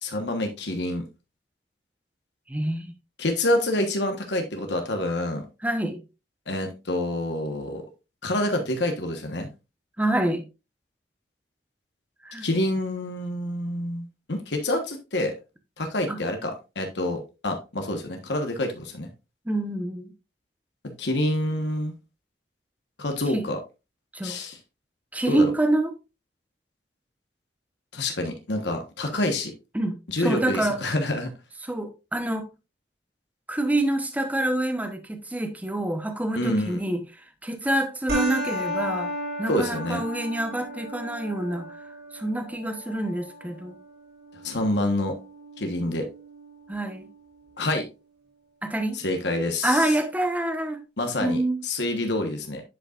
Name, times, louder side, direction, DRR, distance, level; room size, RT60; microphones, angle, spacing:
voice 1, 0.0-1.1 3.2-5.4 6.5-7.8 8.2-9.5 12.4-15.4 15.8-19.1 21.0-22.0 23.0-23.6 24.2-24.6 25.3-25.5 27.9-29.5 30.1-31.3 36.3-36.8 39.5-40.0 44.4-45.2 45.6-46.1 47.6-47.9 48.9-50.0 51.0-52.6, left 1 dB, 70° left, 1.3 m, -27 dB
voice 2, 2.5-2.9 5.6-6.0 10.0-10.5 12.2-12.5 16.1-16.2 19.5-20.1 23.3-23.4 24.1-24.4 25.1-25.9 29.7-30.8 31.6-32.5 33.5-37.0 37.4-39.1 39.4-41.7 42.1-43.8 46.7-47.1 48.6-49.0 49.6-50.8 51.2-51.6, right 1 dB, 10° right, 0.9 m, -26 dB
sound 1, 38.1-47.1, right 1 dB, 55° right, 3.0 m, -35 dB
9.9 x 5.3 x 2.5 m
head